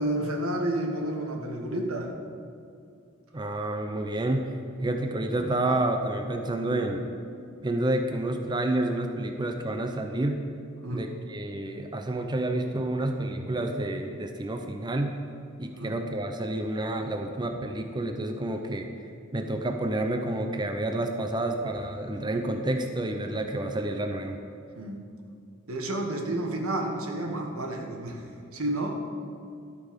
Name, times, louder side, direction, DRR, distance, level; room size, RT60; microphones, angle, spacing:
voice 1, 0.0-2.1 10.8-11.1 15.8-16.0 24.8-25.0 25.7-28.2 28.5-29.0, right 1 dB, 90° right, 2 dB, 1.5 m, -30 dB
voice 2, 3.3-7.1 7.6-10.4 10.9-15.2 15.6-18.9 19.3-24.4, right 1 dB, 20° right, 5 dB, 0.6 m, -29 dB
12.0 x 8.3 x 5.2 m, 2.5 s
head